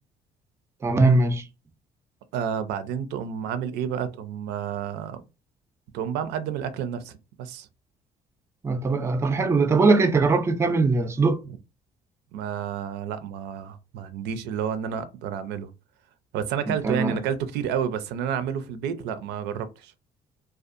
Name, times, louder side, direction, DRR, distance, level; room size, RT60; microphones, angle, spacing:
voice 1, 0.8-1.4 8.6-11.4 16.7-17.2, right 3 dB, 15° right, 0.3 m, -21 dB
voice 2, 2.3-5.2 5.9-7.7 12.3-15.7 16.3-19.9, right 8 dB, 85° right, 0.4 m, -30 dB
2.6 x 2.3 x 2.4 m
cardioid pair, 110°, 17 cm